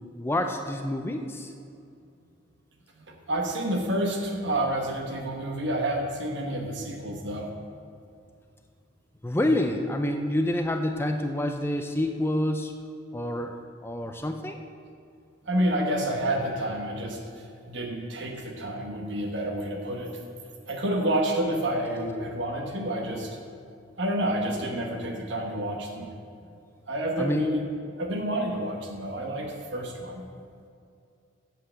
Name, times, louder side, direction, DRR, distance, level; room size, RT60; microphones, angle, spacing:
voice 1, 0.2-1.5 9.2-12.7 13.1-13.6 13.8-14.6 27.2-27.5, left 1 dB, 10° left, 5 dB, 0.4 m, -27 dB
voice 2, 3.0-7.6 15.5-17.2 17.7-20.1 20.7-23.4 24.0-26.1 26.9-27.7 28.0-30.2, right 1 dB, 60° right, 2 dB, 1.2 m, -29 dB
8.4 x 7.7 x 7.3 m, 2.5 s
head